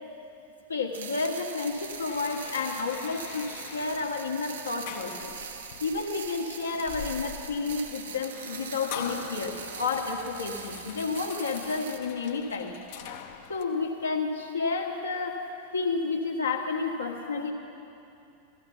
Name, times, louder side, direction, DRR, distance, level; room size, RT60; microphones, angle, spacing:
voice 1, 0.7-5.3 5.8-12.8 13.5-15.4 15.7-17.5, left 4 dB, 75° left, 1 dB, 1.6 m, -31 dB
sound 1, 0.9-12.0, right 6 dB, 65° right, 0.9 m, -42 dB
sound 2, 1.7-13.6, left 8 dB, 50° left, 0.9 m, -44 dB
16.0 x 13.5 x 5.5 m, 2.7 s
figure-of-eight pair, 90°, 0 cm